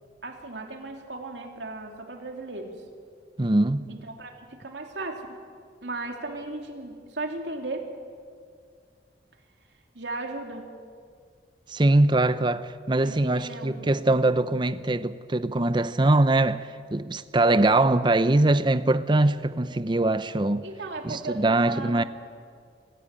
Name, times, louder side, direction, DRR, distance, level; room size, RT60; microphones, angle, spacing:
voice 1, 0.2-2.7 3.9-5.4 5.8-7.9 9.9-10.7 13.0-14.3 20.6-22.1, right 2 dB, 85° right, 3.0 m, -36 dB
voice 2, 3.4-3.9 11.7-20.6 21.0-22.0, right 2 dB, 25° right, 0.7 m, -22 dB
25.0 x 15.0 x 9.0 m
head